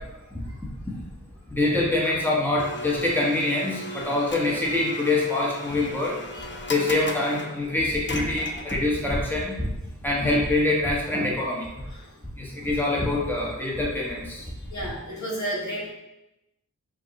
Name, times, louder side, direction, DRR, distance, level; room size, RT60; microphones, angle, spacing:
voice 1, 1.5-6.2 6.7-9.7 10.0-11.7 12.4-14.4, left 2 dB, 5° left, -4 dB, 1.0 m, -25 dB
Domestic sounds home sounds, 2.6-9.1, left 1 dB, 40° left, 0.4 m, -37 dB
voice 2, 14.7-15.9, right 1 dB, 65° left, -4 dB, 1.1 m, -32 dB
4.7 x 2.3 x 3.0 m, 0.94 s
wide cardioid pair, 65°, 31 cm